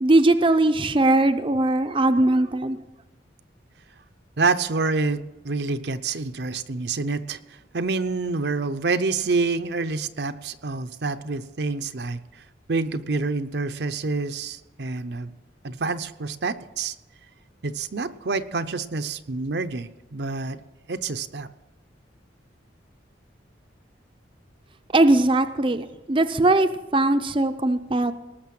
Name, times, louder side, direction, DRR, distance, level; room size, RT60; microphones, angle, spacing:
voice 1, 0.0-2.8 24.9-28.1, right 2 dB, 30° right, 7 dB, 0.6 m, -20 dB
voice 2, 4.4-7.4 7.7-12.4 12.7-15.3 15.6-16.9 17.6-20.6 20.9-21.5, right 3 dB, 65° right, 9 dB, 0.7 m, -27 dB
19.0 x 6.7 x 7.6 m, 1.0 s
head